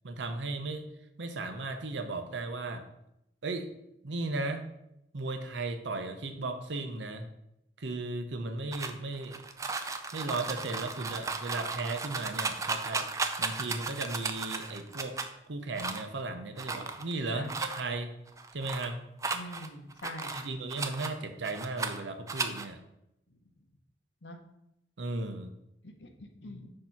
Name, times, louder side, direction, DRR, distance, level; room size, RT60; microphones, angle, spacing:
voice 1, 0.0-0.9 1.2-2.8 3.4-3.7 4.0-4.6 5.1-7.3 7.8-9.4 10.1-15.2 15.5-18.1 18.5-19.0 20.3-22.8 25.0-25.5, right 2 dB, 85° right, 6 dB, 0.7 m, -36 dB
sound 1, 8.7-15.3 15.7-16.2 16.6-17.1 17.4-17.8 18.3-18.9 19.2-21.1 21.4-22.0 22.3-22.7, right 4 dB, 20° right, 0.3 m, -35 dB
voice 2, 19.3-20.5 23.6-23.7 24.2-24.4 25.8-26.7, left 1 dB, 80° left, 5 dB, 0.9 m, -44 dB
6.5 x 2.9 x 5.7 m, 0.83 s
head